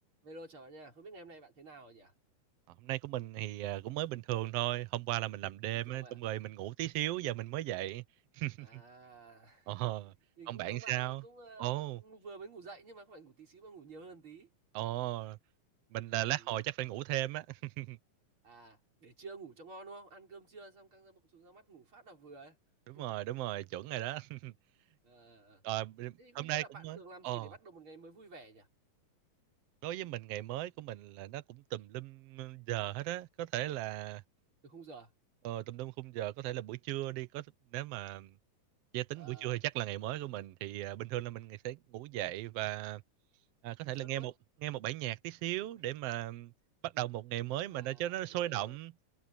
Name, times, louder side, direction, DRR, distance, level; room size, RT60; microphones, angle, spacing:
voice 1, 0.2-2.1 5.7-6.2 8.6-14.5 16.3-16.6 18.4-22.6 22.9-23.2 25.0-25.6 26.2-28.7 34.6-35.1 39.1-39.6 43.8-44.3 47.7-48.8, right 3 dB, 40° right, 5.9 m, -52 dB
voice 2, 2.8-8.0 8.3-8.8 9.7-10.1 10.5-11.2 11.6-12.0 14.7-15.4 15.9-18.0 22.9-24.5 25.6-27.0 27.2-27.5 29.8-34.2 35.4-37.5 37.7-38.3 38.9-43.0 43.6-44.3 44.6-46.5 46.8-48.9, right 15 dB, 75° right, 1.4 m, -37 dB
omnidirectional pair, 3.7 m